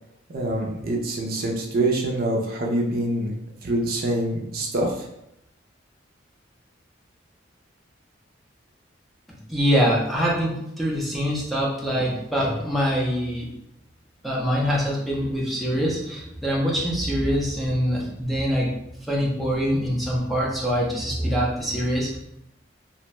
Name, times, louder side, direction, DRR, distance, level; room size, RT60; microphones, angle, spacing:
voice 1, 0.3-3.3 3.6-5.1, right 1 dB, 50° right, -1 dB, 0.5 m, -25 dB
voice 2, 9.5-13.5 14.2-18.7 19.1-22.2, equal, ahead, -5 dB, 0.5 m, -24 dB
2.6 x 2.1 x 3.0 m, 0.82 s
head